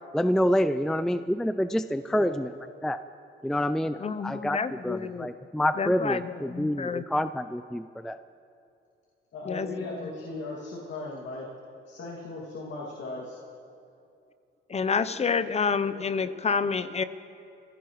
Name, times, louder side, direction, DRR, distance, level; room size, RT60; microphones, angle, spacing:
voice 1, 0.1-2.5 2.8-3.0 3.4-8.2, equal, 5° left, 12 dB, 0.4 m, -27 dB
voice 2, 4.0-5.3 5.8-7.0 9.5-9.7 14.7-17.0, left 5 dB, 35° left, 14 dB, 0.7 m, -28 dB
voice 3, 9.3-11.5 11.9-13.4, left 2 dB, 70° left, -3 dB, 2.3 m, -37 dB
26.5 x 16.0 x 3.1 m, 2.6 s
cardioid pair, 90°, 20 cm